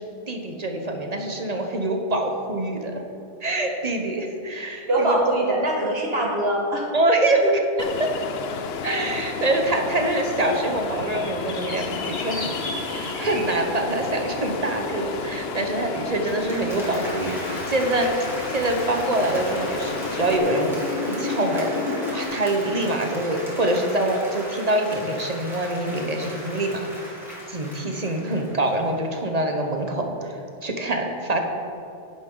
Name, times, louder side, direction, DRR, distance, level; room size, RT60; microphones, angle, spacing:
voice 1, 0.0-3.0 3.4-5.1 6.9-7.4 8.0-8.1 8.8-12.6 12.9-20.8 21.0-21.7 22.1-27.1 27.5-31.4, right 1 dB, 40° right, 3 dB, 1.1 m, -25 dB
voice 2, 4.9-6.8 7.4-7.5, right 1 dB, 65° right, -2 dB, 2.0 m, -22 dB
Ocean, 7.8-20.4, left 5 dB, 70° left, 0.9 m, -33 dB
sound 1, 10.3-22.3, left 2 dB, 50° left, 2.1 m, -34 dB
Applause, 16.1-29.1, equal, ahead, 2.8 m, -37 dB
11.0 x 10.0 x 3.9 m, 2.7 s
omnidirectional pair, 1.1 m